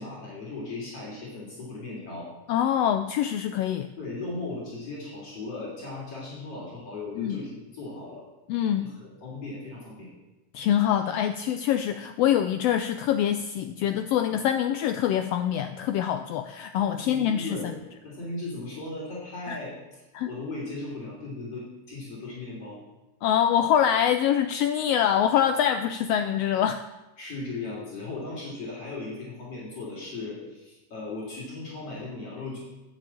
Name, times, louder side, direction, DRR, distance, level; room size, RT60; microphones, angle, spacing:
voice 1, 0.0-2.3 4.0-8.3 8.8-10.1 16.9-22.8 27.2-32.6, left 2 dB, 55° left, -5 dB, 4.2 m, -37 dB
voice 2, 2.5-3.9 7.2-7.4 8.5-8.8 10.5-17.6 19.5-19.6 20.1-20.3 23.2-26.8, left 10 dB, 90° left, 8 dB, 1.4 m, -24 dB
10.5 x 7.7 x 8.4 m, 1.0 s
omnidirectional pair, 3.4 m